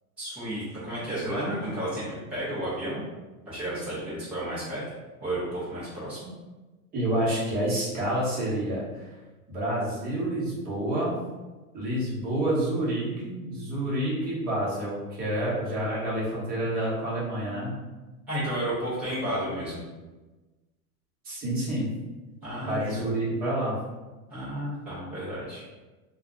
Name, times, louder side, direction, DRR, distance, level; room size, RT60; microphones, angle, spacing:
voice 1, 0.2-2.0 2.3-3.0 3.5-4.9 5.2-6.2 15.9-16.0 18.3-19.8 22.4-23.0 24.3-25.6, right 1 dB, 5° right, -13 dB, 0.3 m, -32 dB
voice 2, 6.9-9.1 9.5-11.1 11.7-17.8 21.2-21.9 22.6-23.7, right 1 dB, 20° right, -8 dB, 1.0 m, -28 dB
2.3 x 2.3 x 3.7 m, 1.2 s
supercardioid pair, 155°, 45 cm